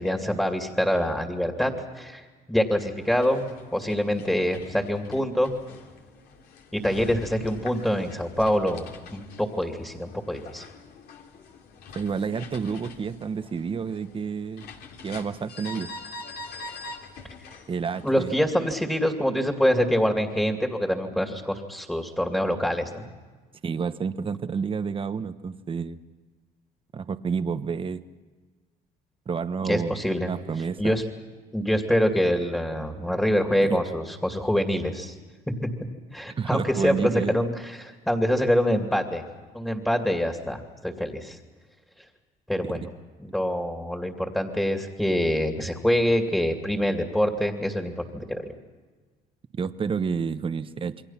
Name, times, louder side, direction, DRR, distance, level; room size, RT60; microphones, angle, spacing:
voice 1, 0.0-5.5 6.7-10.6 18.0-23.1 29.6-30.3 30.8-31.0 31.5-35.1 35.6-35.7 36.1-39.2 39.5-41.4 42.5-42.9 43.2-48.4, equal, 5° left, 4 dB, 2.5 m, -25 dB
sound 1, 3.0-18.3, left 3 dB, 70° left, 2.9 m, -44 dB
voice 2, 11.9-14.7 15.0-15.9 17.7-18.3 23.6-26.0 26.9-28.0 29.3-30.0 30.3-31.0 33.6-33.8 36.4-37.4 42.6-42.8 49.6-51.0, right 6 dB, 30° right, 11 dB, 1.1 m, -29 dB
28.5 x 22.5 x 5.8 m, 1.4 s
cardioid pair, 110°, 17 cm